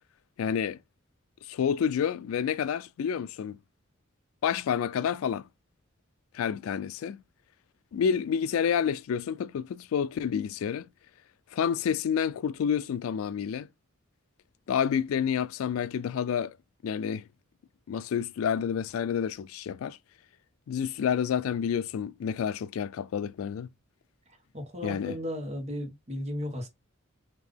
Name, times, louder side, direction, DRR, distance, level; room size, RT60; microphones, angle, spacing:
voice 1, 0.4-0.8 1.5-3.6 4.4-5.5 6.3-7.2 7.9-10.9 11.5-13.7 14.7-16.5 16.8-17.2 17.9-20.0 20.7-23.7 24.8-25.2, left 7 dB, 85° left, 0.3 m, -29 dB
voice 2, 24.5-26.7, left 1 dB, 30° right, 1.2 m, -35 dB
3.7 x 2.7 x 3.4 m
head